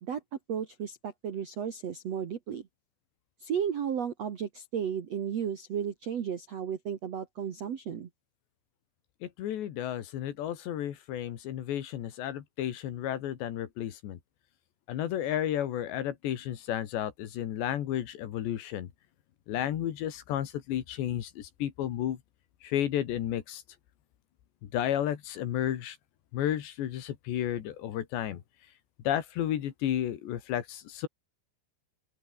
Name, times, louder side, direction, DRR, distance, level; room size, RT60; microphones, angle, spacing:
voice 1, 0.5-2.6 3.4-8.1, right 8 dB, 60° right, 1.7 m, -34 dB
voice 2, 9.2-14.2 14.9-18.9 19.5-22.2 22.6-23.6 24.7-26.0 26.3-28.4 29.1-31.1, left 11 dB, 70° left, 4.0 m, -32 dB
open air
omnidirectional pair, 5.4 m